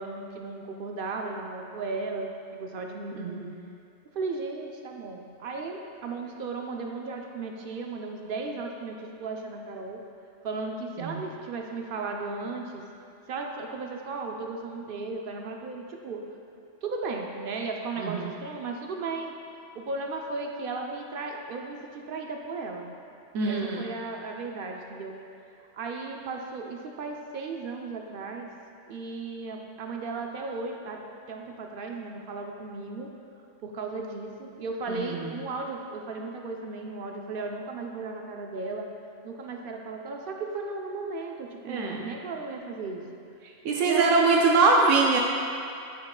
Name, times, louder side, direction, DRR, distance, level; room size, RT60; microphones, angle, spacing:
voice 1, 0.0-3.4 4.1-10.0 10.4-12.8 13.3-16.2 16.8-19.3 19.7-22.9 23.5-25.2 25.7-28.5 28.9-31.0 31.3-33.1 33.6-38.9 39.2-43.0 43.8-44.7, right 3 dB, 60° right, 2 dB, 0.6 m, -35 dB
voice 2, 3.1-3.5 11.0-11.2 18.0-18.3 23.3-23.9 34.9-35.3 41.7-42.1 43.6-45.2, right 3 dB, 85° right, -1 dB, 1.0 m, -23 dB
10.0 x 4.4 x 2.4 m, 2.5 s
omnidirectional pair, 1.3 m